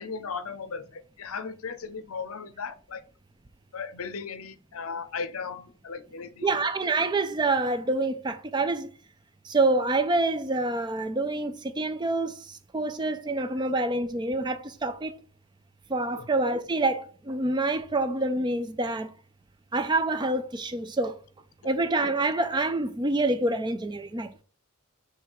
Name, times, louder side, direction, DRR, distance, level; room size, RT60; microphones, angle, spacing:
voice 1, 0.0-3.0 3.7-6.6 16.1-16.3, left 5 dB, 80° left, 0.6 m, -37 dB
voice 2, 6.4-8.9 9.4-15.2 15.9-19.1 19.7-21.2 21.6-24.4, right 2 dB, 20° right, 0.4 m, -27 dB
6.3 x 3.4 x 4.6 m
head